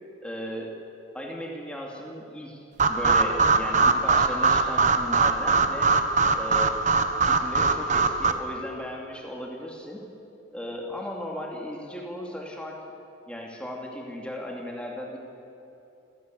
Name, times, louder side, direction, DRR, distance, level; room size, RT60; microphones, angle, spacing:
voice 1, 0.2-0.7 1.1-2.6 2.9-5.9 6.3-6.7 7.2-10.0 10.5-12.8 13.3-15.2, equal, 5° left, -1 dB, 2.7 m, -36 dB
sound 1, 2.8-8.3, right 4 dB, 40° right, 1.1 m, -22 dB
27.0 x 17.0 x 8.3 m, 2.9 s
head